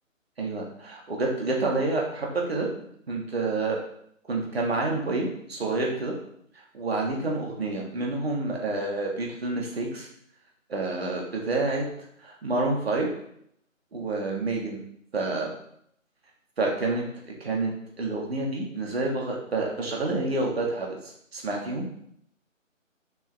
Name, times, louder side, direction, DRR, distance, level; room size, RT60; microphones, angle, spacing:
voice 1, 0.4-2.7 3.1-3.8 4.3-6.1 6.7-10.1 10.7-11.8 12.2-13.1 13.9-14.8 15.1-15.5 16.6-17.0 17.4-17.7 18.0-21.8, right 3 dB, 50° right, -1 dB, 2.1 m, -28 dB
6.9 x 5.9 x 3.5 m, 0.68 s
figure-of-eight pair, 155°, 40 cm